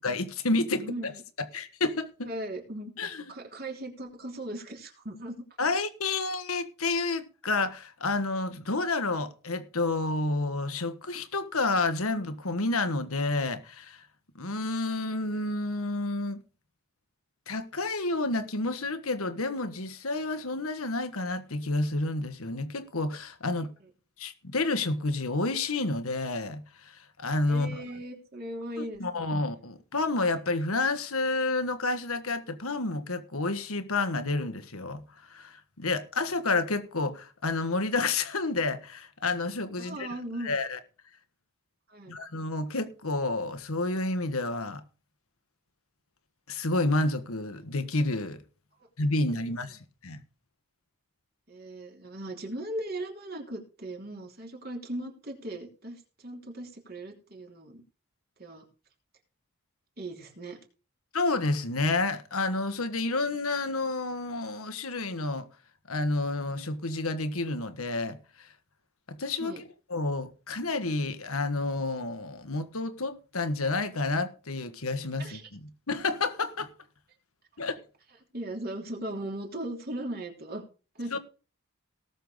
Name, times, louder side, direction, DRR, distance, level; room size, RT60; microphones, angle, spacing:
voice 1, 0.0-1.1 1.5-2.3 3.0-3.3 5.6-14.0 14.3-16.4 17.5-23.7 24.2-27.8 29.0-35.0 35.3-40.1 40.4-40.8 42.1-44.8 46.5-48.4 49.0-50.2 61.1-65.5 65.9-68.5 69.1-69.5 69.9-75.6 75.9-76.7 77.6-77.8 81.1-81.2, left 2 dB, 85° left, 1.5 m, -30 dB
voice 2, 0.7-1.2 2.2-5.4 23.8-23.9 27.5-29.3 39.8-40.6 41.9-42.2 51.5-57.8 58.4-58.7 60.0-60.6 69.4-69.6 75.2-75.5 78.3-80.6 80.9-81.2, right 1 dB, 45° right, 3.1 m, -38 dB
18.5 x 6.8 x 3.8 m
head